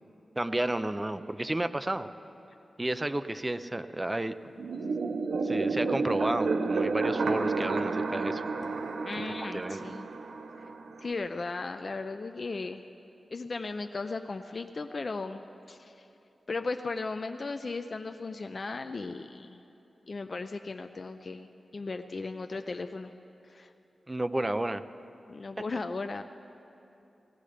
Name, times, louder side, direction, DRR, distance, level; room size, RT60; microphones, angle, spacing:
voice 1, 0.4-2.1 2.8-4.3 5.4-8.4 9.5-9.9 24.1-24.8, right 1 dB, 20° right, 11 dB, 0.5 m, -31 dB
sound 1, 4.6-11.1, right 4 dB, 90° right, 0.7 m, -31 dB
voice 2, 9.0-10.1 11.0-12.8 13.3-16.1 16.5-19.6 20.1-23.1 23.5-23.7 25.3-26.2, left 3 dB, 45° left, 7 dB, 0.5 m, -36 dB
18.5 x 15.0 x 5.0 m, 2.8 s
wide cardioid pair, 95°, 0 cm